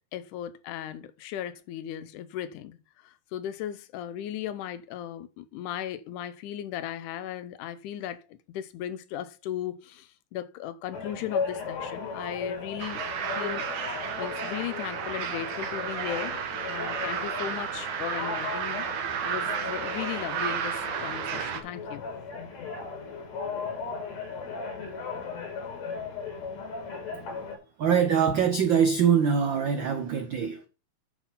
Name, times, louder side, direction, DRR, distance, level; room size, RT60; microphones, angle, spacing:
voice 1, 0.1-13.0 13.3-16.4 16.7-18.9 19.2-22.0, left 11 dB, 85° left, 2.3 m, -37 dB
sound 1, 10.9-27.6, left 4 dB, 65° left, 3.1 m, -37 dB
sound 2, 12.8-21.6, right 7 dB, 65° right, 2.2 m, -32 dB
voice 2, 27.8-30.7, right 7 dB, 80° right, 1.0 m, -24 dB
9.8 x 4.4 x 5.5 m
omnidirectional pair, 3.5 m